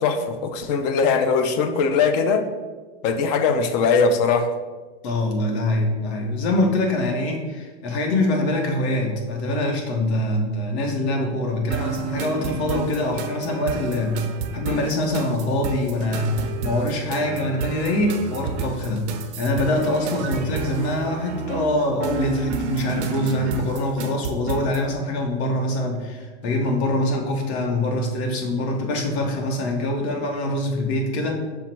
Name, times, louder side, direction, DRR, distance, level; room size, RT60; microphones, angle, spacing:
voice 1, 0.0-2.4 3.0-4.5, left 5 dB, 40° left, 8 dB, 0.4 m, -20 dB
voice 2, 5.0-14.3 14.5-31.3, left 1 dB, 75° left, 1 dB, 1.1 m, -24 dB
sound 1, 11.7-24.8, right 6 dB, 90° right, 0.6 m, -31 dB
5.7 x 2.1 x 4.4 m, 1.3 s
supercardioid pair, 150°, 32 cm